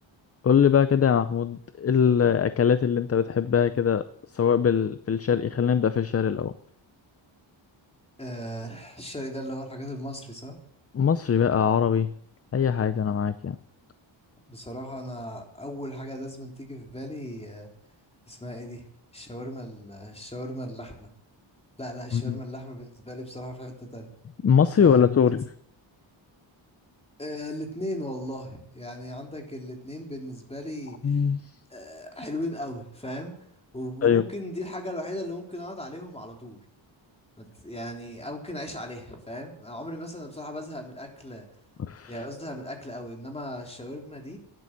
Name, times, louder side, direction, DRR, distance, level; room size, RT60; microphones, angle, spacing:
voice 1, 0.4-4.1 4.3-6.5 10.9-12.1 12.5-13.6 22.1-22.4 24.4-25.4 31.0-31.4 34.0-34.2 41.8-42.1, left 7 dB, 30° left, 13 dB, 0.6 m, -22 dB
voice 2, 8.2-10.6 14.5-17.7 18.3-18.8 19.1-21.1 21.8-24.1 24.8-25.3 27.2-31.2 31.7-33.3 33.7-36.6 37.4-41.5 42.1-44.4, equal, 15° left, 1 dB, 3.7 m, -37 dB
12.5 x 11.0 x 7.5 m, 0.68 s
cardioid pair, 105°, 47 cm